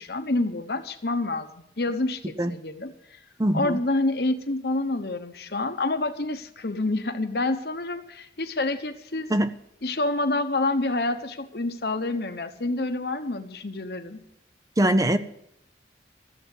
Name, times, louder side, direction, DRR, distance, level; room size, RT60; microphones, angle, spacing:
voice 1, 0.0-3.2 3.5-9.3 9.8-14.2, left 2 dB, 60° left, 8 dB, 1.1 m, -28 dB
voice 2, 3.4-3.8 9.3-9.5 14.8-15.2, right 1 dB, 20° right, 11 dB, 0.5 m, -22 dB
14.0 x 7.8 x 8.0 m, 0.77 s
head